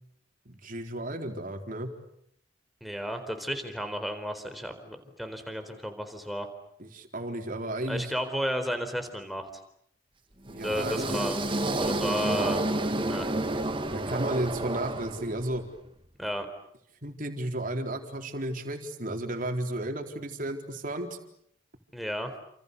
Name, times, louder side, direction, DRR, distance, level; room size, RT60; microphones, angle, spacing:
voice 1, 0.5-1.9 6.8-8.1 10.5-11.1 13.9-15.6 17.0-21.2, right 1 dB, 45° right, 4 dB, 4.1 m, -33 dB
voice 2, 2.8-6.5 7.9-9.5 10.6-12.7 13.1-13.3 16.2-16.5 21.9-22.3, equal, ahead, 6 dB, 4.3 m, -33 dB
sound 1, 10.5-15.6, right 2 dB, 25° right, 1.8 m, -30 dB
30.0 x 28.0 x 6.9 m, 0.72 s
head